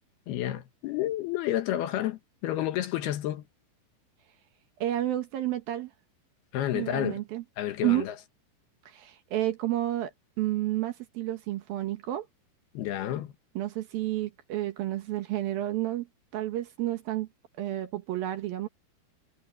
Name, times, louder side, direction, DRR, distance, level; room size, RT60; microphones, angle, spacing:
voice 1, 0.3-3.4 6.5-7.2 7.6-8.1 12.7-13.3, left 13 dB, 70° left, 2.9 m, -30 dB
voice 2, 4.8-5.9 6.7-7.4 7.8-8.1 8.9-12.3 13.6-16.1 16.3-17.3 17.6-18.7, right 14 dB, 65° right, 2.7 m, -30 dB
omnidirectional pair, 5.0 m